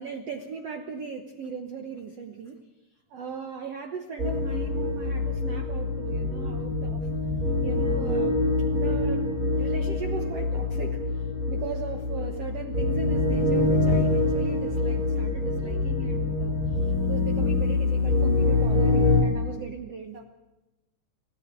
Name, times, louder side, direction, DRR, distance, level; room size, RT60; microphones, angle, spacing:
voice 1, 0.0-2.6 3.1-7.1 7.6-8.4 8.7-20.2, right 5 dB, 85° right, 5 dB, 1.3 m, -38 dB
sound 1, 4.2-19.2, left 2 dB, 20° right, 4.5 m, -25 dB
28.5 x 14.5 x 8.3 m, 1.1 s
omnidirectional pair, 4.8 m